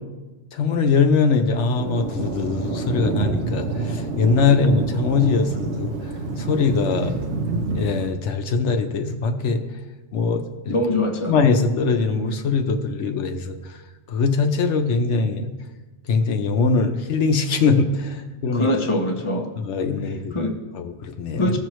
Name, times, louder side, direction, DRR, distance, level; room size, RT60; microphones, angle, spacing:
voice 1, 0.5-5.9 6.4-7.2 7.7-9.6 10.1-10.7 11.3-13.6 14.1-15.5 16.1-18.8 19.6-20.4 20.7-21.6, left 4 dB, 75° left, 6 dB, 1.0 m, -22 dB
Thunder, 1.8-8.1, right 3 dB, 70° right, 1.1 m, -27 dB
voice 2, 10.7-11.3 18.5-19.5 20.3-20.6 21.4-21.6, left 1 dB, 30° left, 3 dB, 0.8 m, -22 dB
16.0 x 6.2 x 3.1 m, 1.2 s
omnidirectional pair, 1.2 m